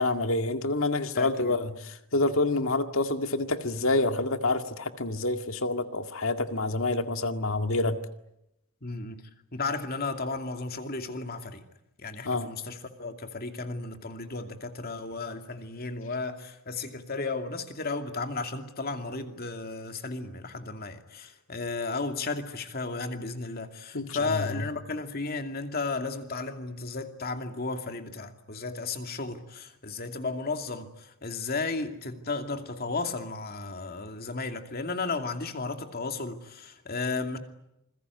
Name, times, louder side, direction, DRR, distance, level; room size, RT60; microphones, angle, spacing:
voice 1, 0.0-8.0 12.2-12.5 23.9-24.6, left 2 dB, 65° left, 2.0 m, -27 dB
voice 2, 1.1-1.5 8.8-11.6 12.0-37.4, left 3 dB, 45° left, 2.5 m, -34 dB
27.5 x 22.0 x 9.6 m
head